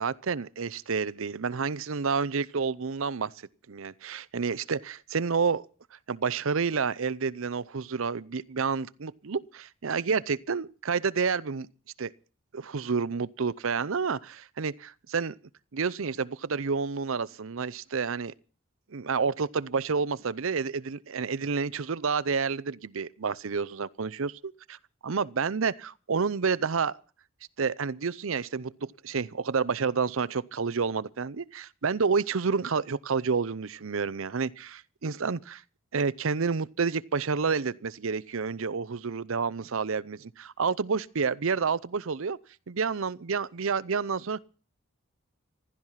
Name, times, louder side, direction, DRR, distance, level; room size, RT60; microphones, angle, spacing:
voice 1, 0.0-3.3 3.7-5.7 6.1-11.7 12.0-12.1 12.5-15.3 15.7-18.3 18.9-24.4 25.0-26.9 27.6-35.6 35.9-42.4 42.7-44.4, right 5 dB, 70° right, 0.6 m, -29 dB
15.5 x 13.0 x 5.7 m
head